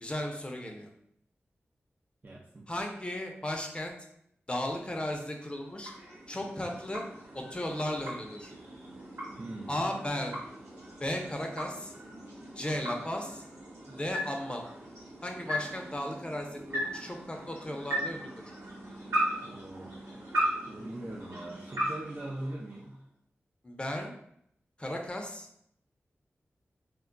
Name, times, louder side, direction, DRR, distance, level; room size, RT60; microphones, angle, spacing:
voice 1, 0.0-0.9 2.7-3.9 4.5-5.9 6.3-7.0 7.3-8.5 9.7-10.4 11.0-11.9 12.5-13.4 13.9-14.6 15.2-18.3 23.6-24.1 24.8-25.5, left 1 dB, 20° left, 2 dB, 0.6 m, -35 dB
voice 2, 2.2-2.7 9.4-9.9 19.4-19.9 20.7-23.0, right 1 dB, 35° right, -3 dB, 0.5 m, -41 dB
sound 1, 5.3-23.1, equal, 80° right, 1.0 m, -38 dB
2.2 x 2.1 x 3.7 m, 0.71 s
cardioid pair, 50°, 5 cm